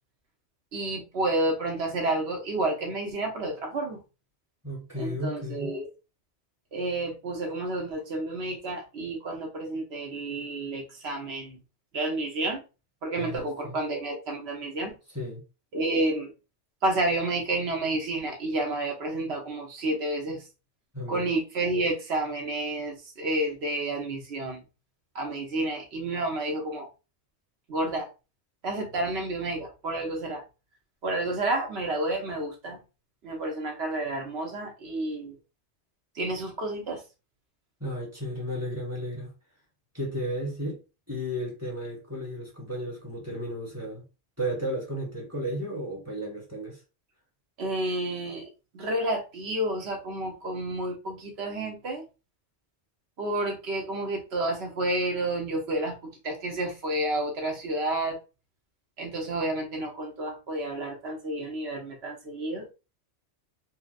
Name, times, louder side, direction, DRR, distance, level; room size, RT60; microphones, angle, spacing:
voice 1, 0.7-4.0 5.0-5.9 6.7-11.6 11.9-12.6 13.0-15.0 15.7-16.3 16.8-20.4 21.1-24.6 25.1-26.9 27.7-28.1 28.6-30.4 31.0-32.8 33.2-35.3 36.1-37.0 47.6-52.0 53.2-55.9 56.2-58.2 59.0-62.7, right 2 dB, 65° right, 1.2 m, -30 dB
voice 2, 4.6-5.7 13.1-13.8 15.1-15.4 20.9-21.3 37.8-39.3 39.9-40.8 41.1-44.0 44.4-46.8, equal, 15° right, 1.2 m, -34 dB
4.4 x 2.1 x 2.4 m
omnidirectional pair, 1.2 m